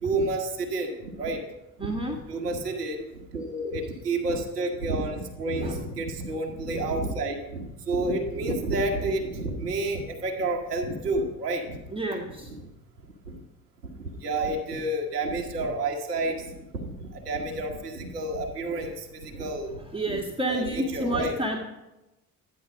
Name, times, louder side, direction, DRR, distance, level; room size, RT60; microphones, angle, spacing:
voice 1, 0.0-1.4 1.8-11.8 12.1-12.2 12.5-12.7 13.3-13.4 13.8-20.2 20.5-21.3, right 2 dB, 85° right, 1 dB, 1.4 m, -30 dB
voice 2, 1.8-2.2 5.6-5.8 11.9-12.5 19.9-21.6, right 1 dB, 10° right, 1 dB, 1.7 m, -29 dB
12.5 x 10.0 x 6.1 m, 1.0 s
figure-of-eight pair, 50°, 46 cm